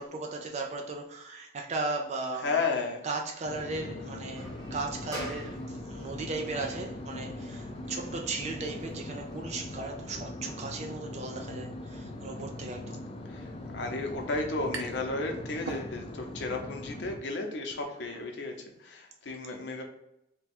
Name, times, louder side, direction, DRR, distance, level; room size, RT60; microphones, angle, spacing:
voice 1, 0.0-2.5 3.0-13.1, right 3 dB, 40° right, 0.4 m, -36 dB
voice 2, 2.4-3.0 13.3-19.8, left 3 dB, 75° left, 0.7 m, -33 dB
sound 1, 3.4-17.2, left 1 dB, 30° left, 0.4 m, -41 dB
sound 2, 4.3-10.4, right 1 dB, 20° right, 1.1 m, -47 dB
sound 3, 14.7-15.1 15.5-16.4, right 3 dB, 85° right, 0.6 m, -40 dB
3.5 x 2.2 x 4.2 m
head